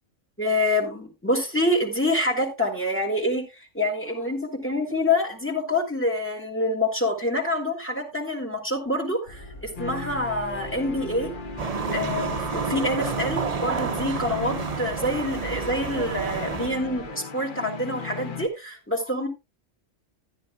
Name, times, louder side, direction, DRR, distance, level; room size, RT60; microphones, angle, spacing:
voice 1, 0.4-3.4 3.7-19.3, left 1 dB, 10° left, 2.5 m, -26 dB
sound 1, 9.2-17.1, equal, 90° left, 6.9 m, -43 dB
sound 2, 9.8-18.5, left 4 dB, 45° left, 1.0 m, -36 dB
sound 3, 11.6-16.7, right 6 dB, 45° right, 0.6 m, -30 dB
13.5 x 10.0 x 2.3 m
omnidirectional pair, 1.2 m